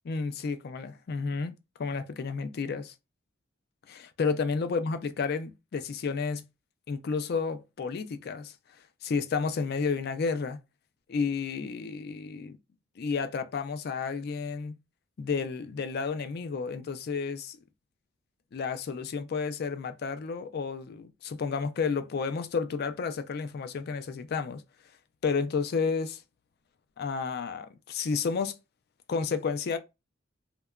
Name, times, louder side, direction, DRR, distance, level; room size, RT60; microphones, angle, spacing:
voice 1, 0.0-1.5 1.8-2.9 3.9-6.4 6.9-8.5 9.0-10.6 11.1-12.6 13.0-14.7 15.2-17.6 18.5-24.6 25.2-26.2 27.0-28.6 29.1-29.8, left 5 dB, 50° left, 0.4 m, -31 dB
2.8 x 2.2 x 2.3 m
head